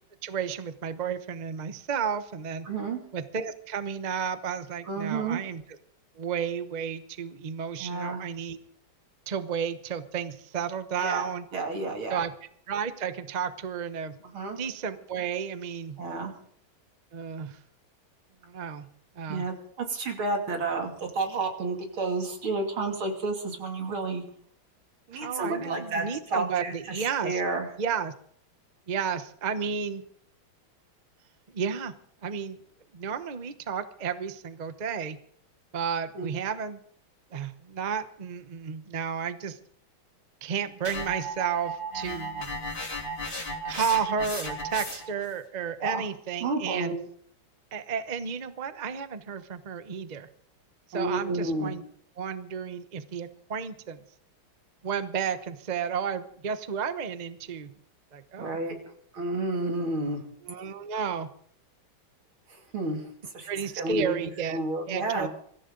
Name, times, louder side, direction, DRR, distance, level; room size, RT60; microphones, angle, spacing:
voice 1, 0.2-2.7 3.1-5.6 6.2-8.6 9.3-11.4 12.1-12.3 12.7-14.2 14.6-16.0 17.1-17.6 18.4-18.9 19.2-19.5 25.1-27.4 27.8-28.1 28.9-30.0 31.5-31.9 32.2-32.6 32.9-35.2 35.7-36.8 37.3-39.6 40.4-42.5 43.6-46.9 47.7-50.3 50.9-51.8 52.2-54.0 54.8-57.7 58.1-58.6 60.4-61.3 63.5-64.6 64.9-65.3, right 7 dB, 35° right, 10 dB, 0.7 m, -32 dB
voice 2, 2.7-3.0 4.9-5.4 7.8-8.2 11.0-12.2 14.3-14.6 16.0-16.3 19.3-24.2 25.1-26.0 26.3-27.7 36.1-36.3 45.8-46.0 46.4-46.9 50.9-51.7 58.4-58.7 59.1-60.2 62.5-63.0 63.3-63.5 63.8-64.2 64.5-65.3, right 3 dB, 90° right, 2 dB, 3.5 m, -30 dB
sound 1, 40.8-45.2, equal, 25° left, 3.2 m, -35 dB
24.5 x 14.5 x 3.9 m, 0.63 s
omnidirectional pair, 2.2 m